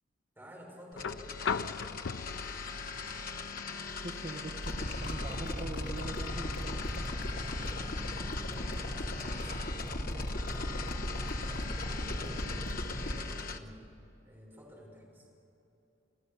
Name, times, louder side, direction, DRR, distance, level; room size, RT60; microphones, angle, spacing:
voice 1, 0.4-2.0 8.5-12.6 12.9-13.8 14.2-15.3, equal, 15° right, -3 dB, 5.7 m, -52 dB
sound 1, 0.9-13.6, left 4 dB, 50° left, 1.1 m, -41 dB
sound 2, 1.0-9.0 10.4-10.5, left 6 dB, 85° left, 0.5 m, -42 dB
voice 2, 4.0-7.0, right 2 dB, 40° right, 2 dB, 1.1 m, -43 dB
sound 3, 4.6-13.2, left 1 dB, 70° left, 3.0 m, -36 dB
29.0 x 15.0 x 6.9 m, 2.9 s
head